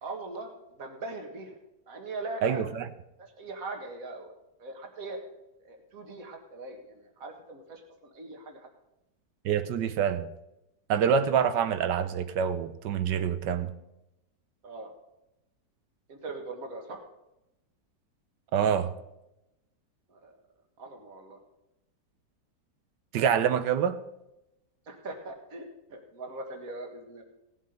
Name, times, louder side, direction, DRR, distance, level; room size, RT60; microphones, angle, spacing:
voice 1, 0.0-1.6 1.9-2.6 3.4-4.3 4.6-5.2 5.6-8.7 14.6-14.9 16.1-17.0 20.1-20.3 20.8-21.4 24.9-27.2, right 2 dB, 55° right, 2.1 m, -41 dB
voice 2, 2.4-2.9 9.4-10.3 10.9-13.7 18.5-18.9 23.1-24.0, right 8 dB, 90° right, 1.5 m, -26 dB
16.5 x 7.4 x 5.2 m
omnidirectional pair, 1.8 m